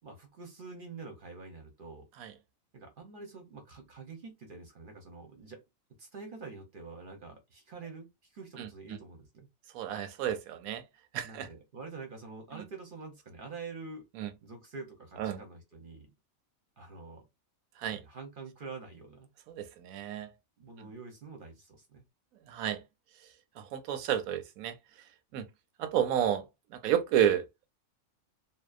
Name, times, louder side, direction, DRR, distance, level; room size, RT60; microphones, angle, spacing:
voice 1, 0.0-2.1 2.7-5.6 6.0-9.5 11.2-14.0 14.4-16.1 16.8-17.2 17.9-19.3 20.6-22.0, right 4 dB, 50° right, 0.7 m, -46 dB
voice 2, 9.7-10.8 11.1-11.5 12.5-12.6 14.2-14.3 15.2-15.4 17.8-18.0 19.5-20.3 20.8-20.9 22.4-22.8 23.2-23.3 23.6-25.5 25.8-27.5, right 10 dB, 85° right, 1.0 m, -31 dB
2.7 x 2.0 x 2.4 m
omnidirectional pair, 1.4 m